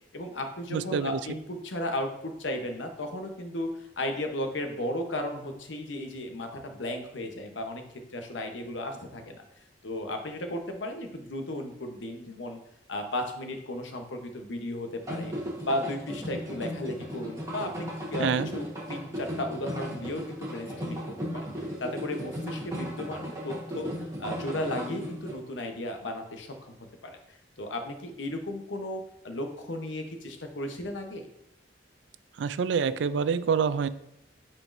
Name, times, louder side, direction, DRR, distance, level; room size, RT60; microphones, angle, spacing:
voice 1, 0.1-7.8 8.1-9.4 9.8-12.6 12.9-15.3 15.6-23.9 24.2-26.8 27.0-27.2 27.6-31.3, left 1 dB, 85° left, 5 dB, 0.9 m, -35 dB
voice 2, 0.7-1.2 18.2-18.5 32.4-33.9, right 6 dB, 75° right, 14 dB, 0.3 m, -26 dB
sound 1, 15.0-25.3, equal, 15° right, 1.2 m, -36 dB
9.0 x 4.4 x 2.6 m, 0.82 s
head